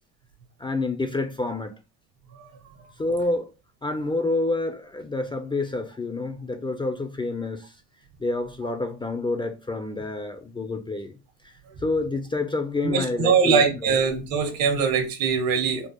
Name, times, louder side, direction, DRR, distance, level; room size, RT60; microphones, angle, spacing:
voice 1, 0.6-1.7 3.0-3.5 3.8-7.7 8.2-11.2 11.8-14.0, left 2 dB, 15° left, 0.4 m, -28 dB
voice 2, 12.8-15.9, right 6 dB, 75° right, 1.4 m, -22 dB
4.6 x 2.0 x 2.9 m
supercardioid pair, 95°, 36 cm